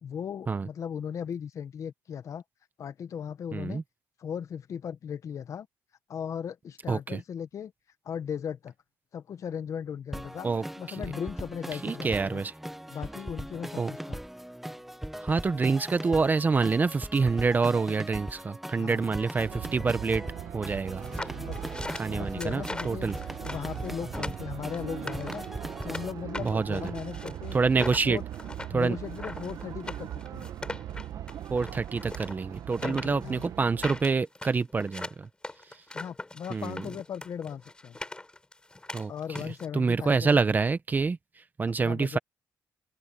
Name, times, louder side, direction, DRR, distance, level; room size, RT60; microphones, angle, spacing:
voice 1, 0.0-2.4 2.8-3.8 4.2-5.7 6.1-7.7 8.0-8.7 9.1-10.5 10.8-12.4 12.9-14.2 18.7-19.1 21.3-21.7 22.1-23.1 23.4-27.6 28.0-28.2 28.7-30.5 32.8-33.4 35.9-38.0 39.1-40.4 41.8-42.2, left 8 dB, 50° left, 1.3 m, -37 dB
voice 2, 3.5-3.8 6.9-7.2 10.4-11.0 11.8-12.5 13.8-13.9 15.2-20.2 20.5-21.0 21.9-23.2 24.2-24.3 26.4-26.8 27.5-28.2 28.7-29.0 31.5-35.3 36.5-36.8 38.9-39.4 39.7-41.2 41.6-42.2, right 4 dB, 25° right, 1.1 m, -27 dB
sound 1, 10.1-26.1, right 1 dB, 5° right, 1.4 m, -40 dB
sound 2, 19.4-34.0, right 11 dB, 65° right, 1.7 m, -40 dB
sound 3, 21.0-26.0 26.3-39.7, left 2 dB, 15° left, 5.9 m, -40 dB
open air
cardioid pair, 110°, 7 cm